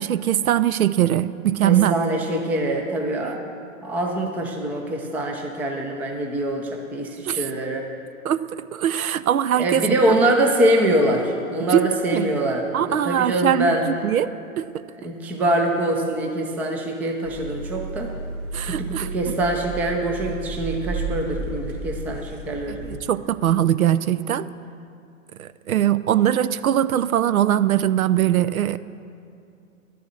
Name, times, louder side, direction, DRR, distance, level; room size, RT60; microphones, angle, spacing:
voice 1, 0.0-2.0 3.2-3.3 7.3-7.5 8.2-10.2 11.6-12.3 12.7-14.3 14.6-14.7 18.5-19.1 22.7-24.5 25.4-28.8, right 11 dB, 90° right, 15 dB, 0.5 m, -21 dB
voice 2, 1.6-3.5 3.8-7.9 9.6-13.8 15.0-18.1 18.7-22.8, right 1 dB, 5° right, 2 dB, 0.3 m, -24 dB
sound 1, 17.2-23.0, right 3 dB, 60° right, 2.1 m, -33 dB
11.0 x 6.9 x 7.6 m, 2.5 s
hypercardioid pair, 120°, 41 cm